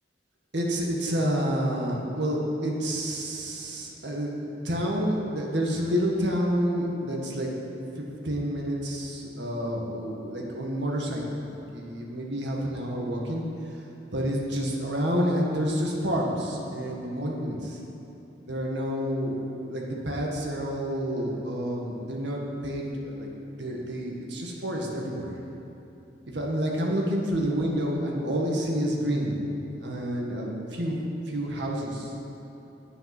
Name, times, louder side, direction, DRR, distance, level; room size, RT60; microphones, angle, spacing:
voice 1, 0.5-7.5 8.0-13.5 14.1-17.8 18.5-23.3 23.6-25.3 26.3-29.5 29.8-31.0 31.3-32.2, equal, 70° right, -2 dB, 1.8 m, -29 dB
10.0 x 9.1 x 6.1 m, 3.0 s
head